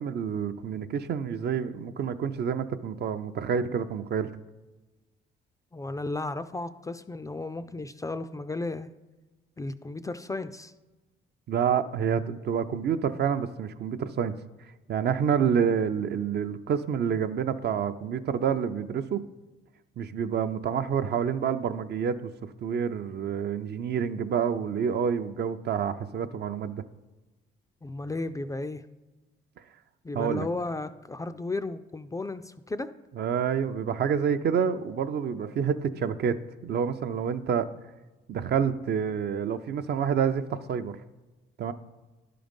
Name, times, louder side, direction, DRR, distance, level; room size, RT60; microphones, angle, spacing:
voice 1, 0.0-4.3 11.5-14.3 14.9-19.2 20.0-22.1 22.6-26.8 30.1-30.5 33.2-36.4 36.6-37.7 38.3-41.0 41.6-41.7, right 7 dB, 55° right, 10 dB, 0.5 m, -28 dB
voice 2, 5.7-8.9 9.6-10.7 27.8-28.8 30.0-32.9, left 2 dB, 15° left, 11 dB, 0.3 m, -34 dB
11.0 x 3.8 x 5.2 m, 1.2 s
cardioid pair, 90°, 20 cm